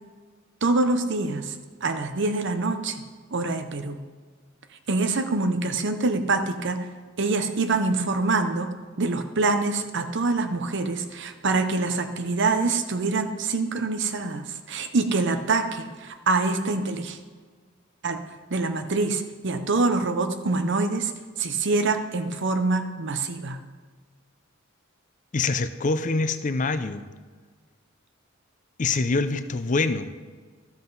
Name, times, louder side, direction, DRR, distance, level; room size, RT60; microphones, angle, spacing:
voice 1, 0.6-1.6 1.8-3.0 3.3-4.0 4.9-6.9 7.2-17.2 18.0-18.2 18.5-21.1 21.4-23.6, right 3 dB, 60° right, 8 dB, 0.8 m, -25 dB
voice 2, 25.3-27.1 28.8-30.2, left 3 dB, 40° left, 11 dB, 0.5 m, -25 dB
13.0 x 7.5 x 4.0 m, 1.5 s
head